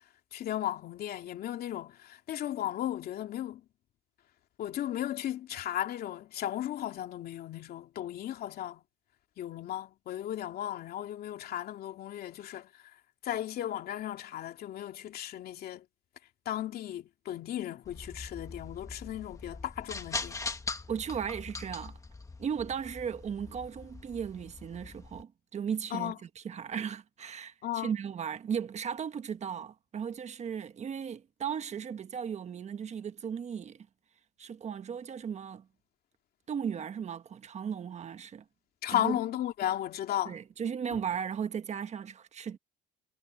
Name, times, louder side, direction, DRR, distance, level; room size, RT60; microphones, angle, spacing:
voice 1, 0.3-3.6 4.6-8.8 9.4-12.7 13.2-15.8 16.5-20.4 25.9-26.2 27.6-27.9 38.8-40.4 40.9-41.0, left 12 dB, 65° left, 2.6 m, -35 dB
sound 1, 17.8-25.2, left 3 dB, 20° left, 1.6 m, -42 dB
voice 2, 20.9-22.0 22.4-33.8 34.4-35.6 36.5-38.4 38.9-39.2 40.2-42.6, right 7 dB, 40° right, 1.3 m, -36 dB
cardioid pair, 110°, 17 cm